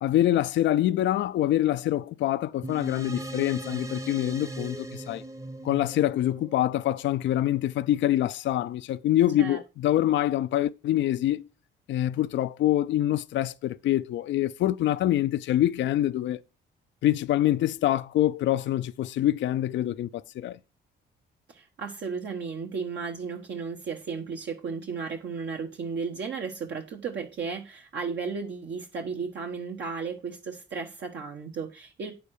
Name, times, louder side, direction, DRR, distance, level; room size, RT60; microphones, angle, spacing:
voice 1, 0.0-5.2 5.6-11.5 11.9-16.4 17.0-20.6, left 13 dB, 70° left, 0.5 m, -25 dB
sound 1, 2.6-7.4, right 1 dB, 15° right, 0.8 m, -39 dB
voice 2, 21.5-32.1, right 5 dB, 65° right, 1.3 m, -34 dB
8.8 x 7.0 x 4.9 m
cardioid pair, 90°, 20 cm